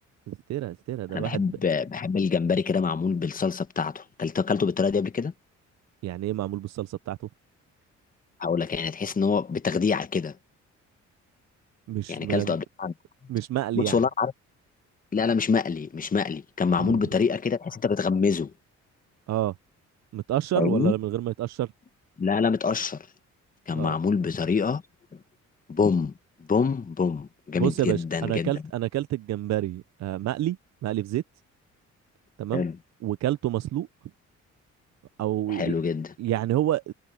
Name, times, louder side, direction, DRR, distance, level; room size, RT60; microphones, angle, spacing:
voice 1, 0.3-1.6 6.0-7.2 11.9-12.6 13.3-14.0 16.8-17.0 19.3-19.5 20.1-21.7 23.7-24.0 27.5-30.6 30.8-31.2 32.4-32.6 33.0-33.9 35.2-35.7 36.2-36.9, right 14 dB, 60° right, 0.6 m, -28 dB
voice 2, 1.1-5.3 8.4-10.4 12.1-12.9 13.7-14.3 15.1-18.5 20.5-20.9 22.2-23.1 23.7-24.8 25.7-26.1 26.5-28.5 32.5-32.8 35.5-36.1, left 5 dB, 30° left, 1.1 m, -25 dB
cardioid pair, 90°, 30 cm